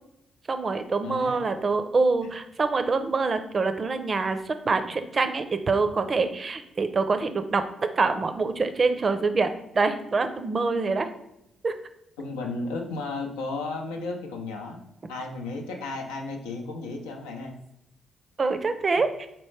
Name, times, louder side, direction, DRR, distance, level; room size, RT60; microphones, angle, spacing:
voice 1, 0.5-7.6 8.0-11.1 11.6-11.7 18.4-19.3, right 4 dB, 45° right, 9 dB, 0.5 m, -25 dB
voice 2, 1.0-1.5 12.2-14.8 15.1-17.6, left 3 dB, 85° left, 2 dB, 0.5 m, -34 dB
4.2 x 3.0 x 3.2 m, 0.82 s
hypercardioid pair, 40°, 0 cm